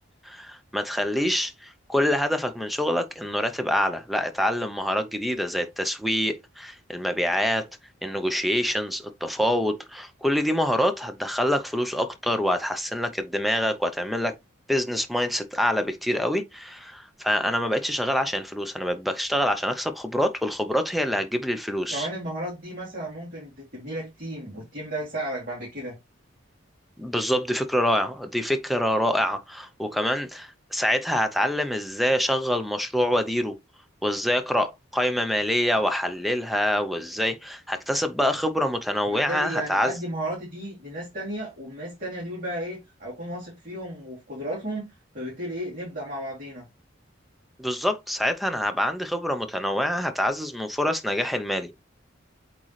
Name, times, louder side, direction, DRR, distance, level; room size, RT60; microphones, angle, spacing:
voice 1, 0.2-7.7 8.0-14.3 14.7-22.1 27.0-33.5 34.0-39.9 47.6-51.7, equal, ahead, 0.6 m, -26 dB
voice 2, 21.9-26.0 39.1-44.9 45.1-46.6, right 1 dB, 45° right, 3.1 m, -34 dB
8.2 x 3.7 x 3.2 m
head